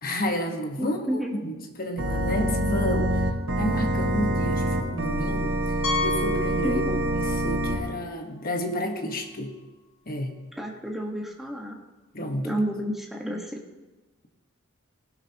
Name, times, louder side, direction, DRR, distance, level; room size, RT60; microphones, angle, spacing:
voice 1, 0.0-3.3 3.6-5.6 6.0-6.8 7.1-9.5 10.1-10.3 12.1-12.6, left 1 dB, 45° left, 4 dB, 1.3 m, -30 dB
voice 2, 0.8-1.4 6.6-7.0 10.5-11.8 12.4-13.6, equal, ahead, -1 dB, 1.4 m, -31 dB
Organ, 2.0-7.8, right 1 dB, 90° right, 2.7 m, -26 dB
Piano, 5.8-7.4 7.7-7.9 8.4-8.5 8.8-8.9 11.0-11.1, left 3 dB, 70° left, 1.5 m, -32 dB
19.0 x 11.0 x 2.9 m, 1.2 s
head